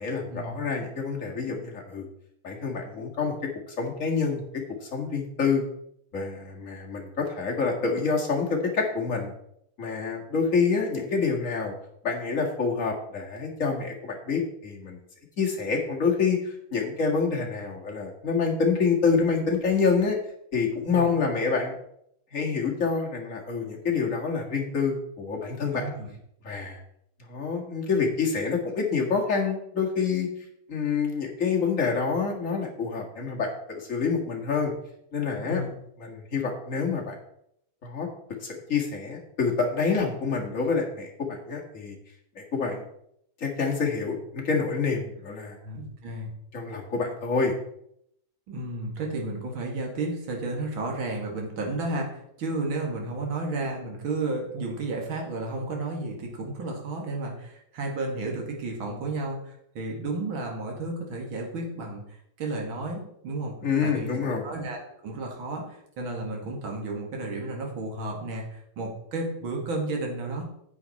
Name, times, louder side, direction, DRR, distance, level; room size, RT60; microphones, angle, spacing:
voice 1, 0.0-2.1 2.4-3.3 3.7-4.4 4.8-5.6 6.1-9.3 9.8-11.7 12.0-15.0 15.4-20.2 20.5-21.7 22.3-25.9 26.4-26.8 27.3-30.3 30.7-34.7 35.1-35.6 36.0-37.2 37.8-38.1 38.4-42.0 42.4-42.8 43.4-45.6 46.5-47.5 63.6-64.5, left 5 dB, 35° left, 0 dB, 2.2 m, -27 dB
voice 2, 25.7-26.1 35.4-35.7 45.6-46.4 48.5-62.0 62.4-63.5 63.8-64.1 64.4-70.4, right 2 dB, 65° right, 1 dB, 2.7 m, -32 dB
9.5 x 8.5 x 4.2 m, 0.74 s
omnidirectional pair, 2.4 m